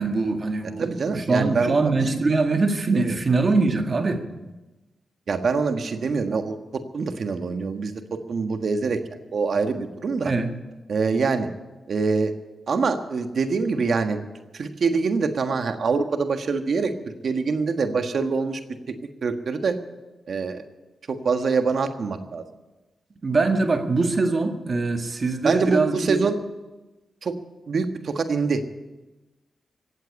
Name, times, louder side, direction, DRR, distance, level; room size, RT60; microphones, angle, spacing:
voice 1, 0.0-4.2 10.2-10.5 23.2-26.2, right 3 dB, 45° right, 5 dB, 1.9 m, -23 dB
voice 2, 0.8-1.7 2.9-3.2 5.3-8.0 8.3-9.0 9.3-10.3 10.9-11.5 11.9-12.3 12.7-14.2 14.5-18.6 18.9-19.0 19.2-19.8 20.3-20.6 21.1-22.4 25.4-26.4 27.2-27.3 27.7-28.6, right 4 dB, 65° right, 7 dB, 1.5 m, -24 dB
16.5 x 8.1 x 9.8 m, 1.1 s
cardioid pair, 60°, 0 cm